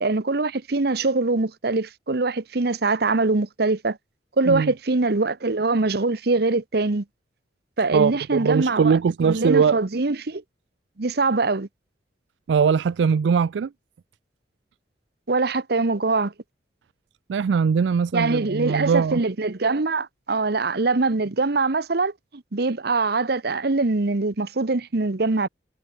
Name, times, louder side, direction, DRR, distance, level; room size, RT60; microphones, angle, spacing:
voice 1, 0.0-4.0 4.4-7.0 7.8-10.4 11.0-11.7 15.3-16.3 18.1-25.5, right 3 dB, 65° right, 1.0 m, -23 dB
voice 2, 7.9-9.8 12.5-13.7 17.3-19.2, right 6 dB, 90° right, 0.4 m, -21 dB
head